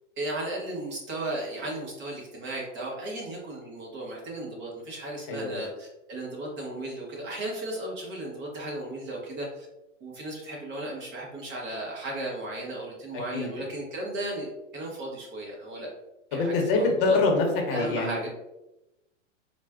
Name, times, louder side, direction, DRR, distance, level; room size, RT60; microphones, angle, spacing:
voice 1, 0.2-9.7 10.0-15.9 16.3-17.2 17.7-18.3, right 1 dB, 30° right, -3 dB, 1.0 m, -35 dB
voice 2, 5.3-5.6 13.3-13.5 16.3-18.3, left 3 dB, 45° left, 1 dB, 0.9 m, -25 dB
4.2 x 2.3 x 2.4 m, 0.94 s
hypercardioid pair, 140°, 38 cm